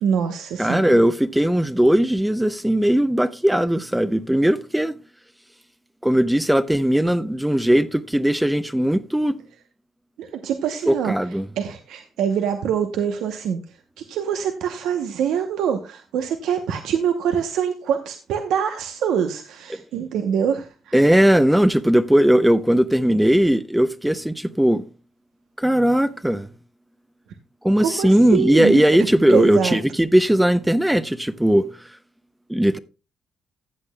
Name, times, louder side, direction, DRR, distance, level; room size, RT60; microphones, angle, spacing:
voice 1, 0.0-1.0 10.2-11.1 11.6-13.6 14.0-20.9 27.8-28.8 29.3-29.8, right 8 dB, 85° right, 0.8 m, -24 dB
voice 2, 0.6-4.9 6.0-9.4 10.9-11.5 20.9-24.8 25.6-26.5 27.6-31.7 32.5-32.8, right 1 dB, 5° right, 0.5 m, -18 dB
14.5 x 8.2 x 2.2 m
cardioid pair, 90°, 0 cm